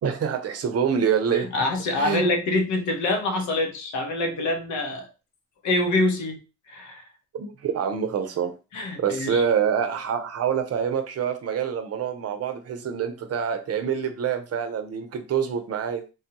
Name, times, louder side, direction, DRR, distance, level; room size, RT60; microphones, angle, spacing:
voice 1, 0.0-1.5 1.9-2.3 7.3-8.5 9.0-16.1, right 7 dB, 55° right, 0.6 m, -26 dB
voice 2, 1.3-5.1 5.6-6.4 6.7-7.0 8.7-9.4, left 2 dB, 70° left, 1.0 m, -25 dB
3.3 x 2.2 x 2.9 m
cardioid pair, 90°, 30 cm